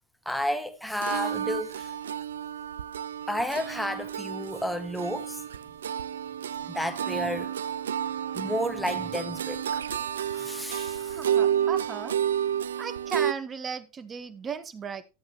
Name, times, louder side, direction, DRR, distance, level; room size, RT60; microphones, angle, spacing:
voice 1, 0.3-1.9 3.3-5.4 6.6-7.5 8.3-9.8 10.3-11.2, equal, 5° left, 1.9 m, -32 dB
sound 1, 1.0-13.3, right 9 dB, 80° right, 0.5 m, -31 dB
voice 2, 10.9-12.1 12.8-15.0, right 6 dB, 25° right, 1.6 m, -36 dB
13.0 x 8.0 x 3.1 m
hypercardioid pair, 95°, 0 cm